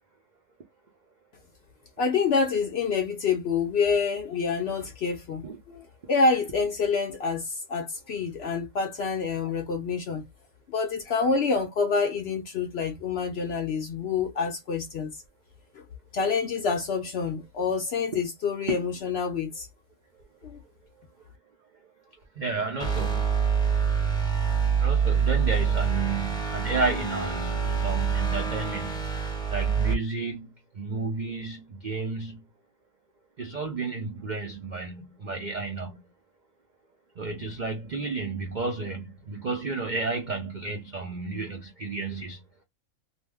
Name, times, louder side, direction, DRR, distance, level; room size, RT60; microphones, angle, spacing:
voice 1, 2.0-10.2 10.7-15.2 16.1-19.7 20.4-20.6, left 5 dB, 65° left, 0.6 m, -27 dB
voice 2, 22.4-23.3 24.8-32.4 33.4-36.0 37.2-42.4, right 3 dB, 80° right, 0.4 m, -32 dB
sound 1, 22.8-29.9, right 6 dB, 5° left, 0.6 m, -26 dB
2.7 x 2.1 x 3.4 m
omnidirectional pair, 1.6 m